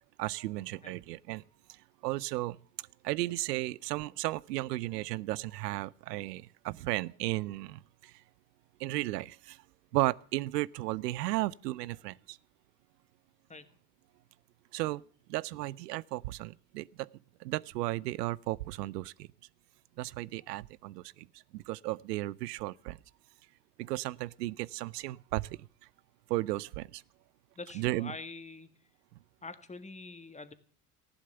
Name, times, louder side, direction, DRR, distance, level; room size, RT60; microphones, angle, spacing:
voice 1, 0.2-1.4 2.0-2.6 3.0-8.1 8.8-9.6 9.9-12.4 14.7-15.0 15.3-17.1 17.4-19.3 20.0-21.3 21.5-23.0 23.8-25.7 26.3-27.0 27.7-28.1, right 18 dB, 85° right, 0.6 m, -34 dB
voice 2, 27.6-28.7 29.4-30.5, left 3 dB, 15° left, 1.8 m, -45 dB
15.0 x 11.5 x 6.9 m
hypercardioid pair, 75°, 48 cm